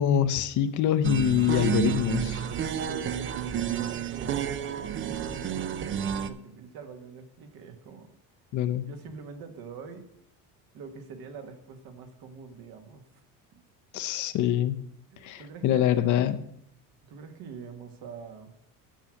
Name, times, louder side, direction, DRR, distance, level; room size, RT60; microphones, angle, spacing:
voice 1, 0.0-2.4 8.5-8.8 13.9-14.8 15.2-16.4, left 10 dB, 45° left, 9 dB, 0.8 m, -25 dB
sound 1, 1.0-6.3, right 9 dB, 30° right, 0.5 m, -30 dB
voice 2, 2.7-8.1 8.9-10.1 10.7-13.0 13.5-13.6 15.1-15.9 17.0-18.5, right 5 dB, 60° right, 6 dB, 1.7 m, -44 dB
10.0 x 6.2 x 6.4 m, 0.75 s
cardioid pair, 145°, 40 cm